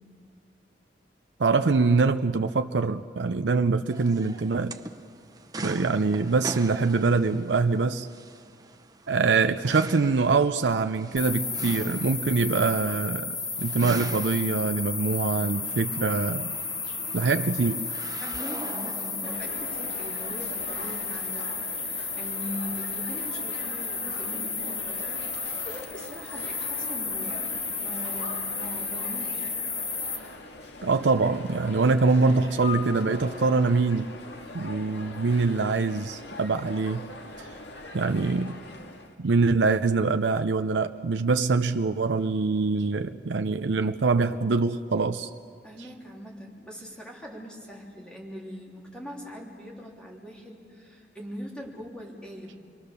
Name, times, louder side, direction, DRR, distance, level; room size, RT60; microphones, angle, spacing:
voice 1, 1.4-4.8 5.6-8.1 9.1-16.6 17.1-17.9 30.8-34.1 34.5-37.1 37.4-37.5 37.9-38.6 39.2-45.3, right 4 dB, 90° right, 8 dB, 0.6 m, -24 dB
sound 1, 3.9-21.3, right 2 dB, 20° right, 0.8 m, -42 dB
sound 2, 11.2-30.2, left 4 dB, 50° left, 3.1 m, -33 dB
voice 2, 18.2-21.5 21.8-29.5 45.6-52.6, equal, 5° left, -2 dB, 3.5 m, -41 dB
sound 3, 19.2-39.1, left 2 dB, 80° left, 1.9 m, -41 dB
28.5 x 22.0 x 6.8 m, 2.2 s
head